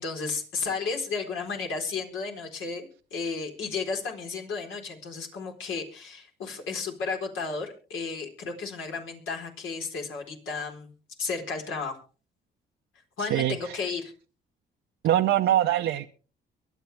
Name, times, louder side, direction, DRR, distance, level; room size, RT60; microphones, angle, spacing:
voice 1, 0.0-10.9 11.2-12.0 13.2-14.1, left 4 dB, 80° left, 2 dB, 4.1 m, -33 dB
voice 2, 13.2-13.8 15.0-16.1, right 12 dB, 80° right, 5 dB, 0.8 m, -24 dB
23.5 x 8.2 x 3.4 m, 0.38 s
cardioid pair, 90°, 20 cm